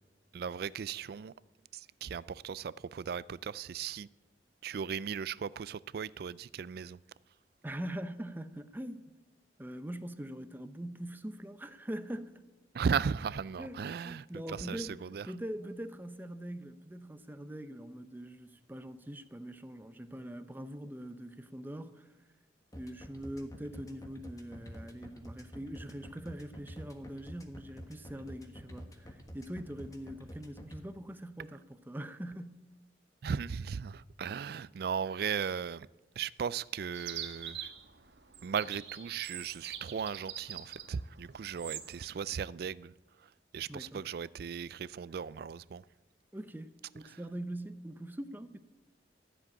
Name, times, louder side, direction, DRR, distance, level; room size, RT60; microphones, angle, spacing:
voice 1, 0.3-1.3 1.7-4.1 4.6-7.0 12.7-15.3 33.2-35.9 36.2-37.7 38.4-42.9 43.2-45.8 47.1-47.2, right 6 dB, 60° right, 0.3 m, -37 dB
voice 2, 7.6-9.0 9.6-12.4 13.6-15.0 15.2-22.1 22.7-32.6 43.7-44.0 46.3-48.6, right 1 dB, 10° right, 0.6 m, -43 dB
sound 1, 22.7-30.8, equal, 20° left, 1.4 m, -47 dB
Chirp tweet, 36.9-42.1, right 10 dB, 80° right, 1.4 m, -44 dB
13.5 x 7.6 x 9.7 m
head